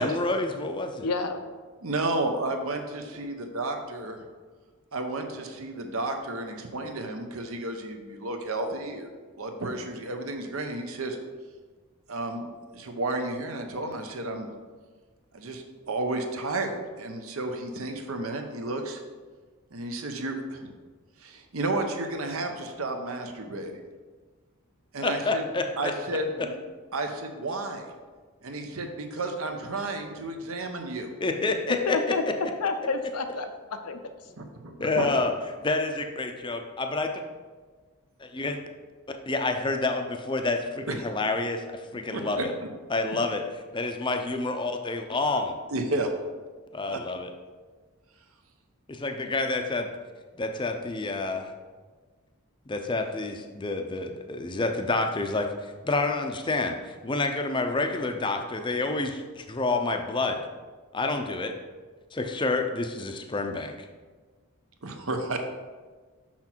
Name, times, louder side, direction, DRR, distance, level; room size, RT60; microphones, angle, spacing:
voice 1, 0.0-1.1 25.0-25.9 31.2-32.0 34.8-35.3 35.6-37.1 38.2-38.6 39.1-42.5 42.9-43.4 43.7-45.6 46.7-47.3 48.9-49.9 50.4-51.5 52.7-60.4 60.9-61.5 62.1-63.8, left 3 dB, 20° left, 5 dB, 0.5 m, -28 dB
voice 2, 1.0-1.4 31.9-32.2 32.6-33.5 33.8-34.0, left 4 dB, 90° left, 7 dB, 0.7 m, -28 dB
voice 3, 1.8-4.2 4.9-9.1 9.4-11.2 12.1-12.5 12.7-14.5 15.3-19.0 19.7-20.7 21.2-23.8 24.9-25.4 25.8-26.6 26.9-27.9 28.4-31.1 34.4-35.1 40.9-41.0 42.1-42.4 45.7-46.1 46.9-47.0 64.8-65.4, right 2 dB, 70° right, 5 dB, 0.8 m, -32 dB
5.9 x 5.9 x 4.4 m, 1.4 s
head